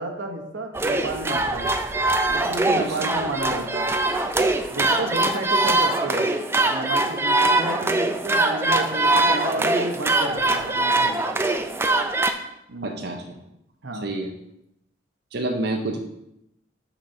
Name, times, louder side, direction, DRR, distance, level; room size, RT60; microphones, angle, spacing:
voice 1, 0.0-1.7 2.3-3.9 4.7-6.3 6.6-11.2 12.7-13.1 13.8-14.1, right 2 dB, 85° right, 3 dB, 1.1 m, -31 dB
sound 1, 0.7-12.3, right 2 dB, 15° right, 0.3 m, -22 dB
voice 2, 2.7-3.1 12.8-13.4 14.0-14.3 15.3-16.0, right 2 dB, 60° right, 2 dB, 0.6 m, -29 dB
6.0 x 4.1 x 5.7 m, 0.83 s
head